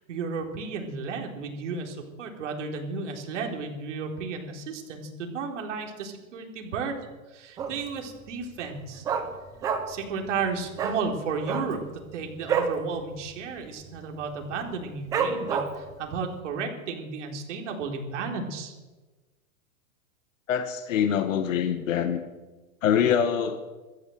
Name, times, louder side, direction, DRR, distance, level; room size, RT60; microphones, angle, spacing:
voice 1, 0.1-7.0 7.3-9.0 9.9-11.8 12.1-18.7, right 5 dB, 55° right, 3 dB, 4.0 m, -33 dB
Dog, 7.6-8.0 8.3-8.4 8.7-10.1 10.4-10.5 10.7-11.0 11.4-12.8 13.2-13.3 13.6-14.0 14.4-14.5 15.1-15.9 16.4-16.5, right 6 dB, 10° right, 0.8 m, -28 dB
voice 2, 20.5-22.2 22.8-23.6, left 8 dB, 60° left, 7 dB, 1.9 m, -24 dB
26.0 x 13.5 x 7.9 m, 1.2 s
supercardioid pair, 180°, 43 cm